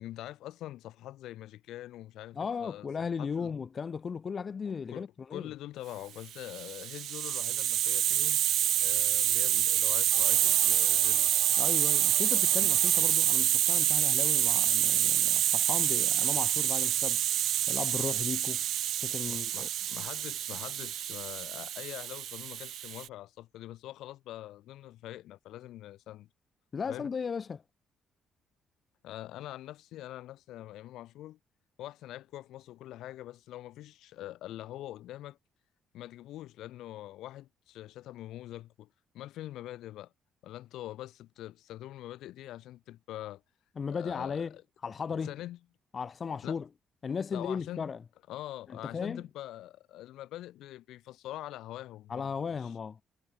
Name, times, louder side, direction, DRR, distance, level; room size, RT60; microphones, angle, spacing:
voice 1, 0.0-2.9 3.2-3.5 4.9-8.4 8.8-11.3 12.6-12.7 19.3-26.3 26.9-27.1 29.0-31.4 31.8-35.4 35.9-38.9 39.1-40.1 40.4-43.4 43.9-44.6 45.2-45.6 46.4-46.6 47.3-47.9 48.3-52.7, left 14 dB, 70° left, 6.2 m, -44 dB
voice 2, 2.3-5.5 11.6-17.2 17.7-18.6 19.0-19.7 26.7-27.6 43.8-44.6 44.8-45.3 45.9-46.7 47.0-48.0 48.7-49.2 52.1-53.0, left 6 dB, 30° left, 4.4 m, -36 dB
Hiss, 6.4-23.1, right 12 dB, 60° right, 1.7 m, -27 dB
sound 1, 10.1-13.6, right 4 dB, 20° right, 6.3 m, -52 dB
cardioid pair, 165°, 0 cm